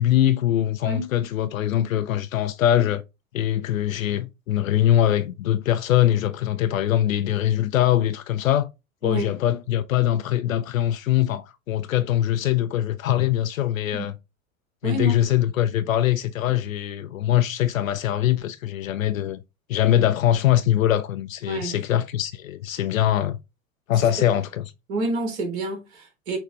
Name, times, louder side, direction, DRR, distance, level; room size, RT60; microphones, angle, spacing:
voice 1, 0.0-3.0 3.3-8.7 9.0-14.1 14.8-19.4 19.7-23.4 23.9-24.7, left 12 dB, 75° left, 0.5 m, -22 dB
voice 2, 9.0-9.3 13.9-14.1 14.8-15.2 21.5-21.8 24.9-26.4, right 2 dB, 50° right, 1.7 m, -28 dB
5.9 x 2.3 x 3.3 m
figure-of-eight pair, 85°, 41 cm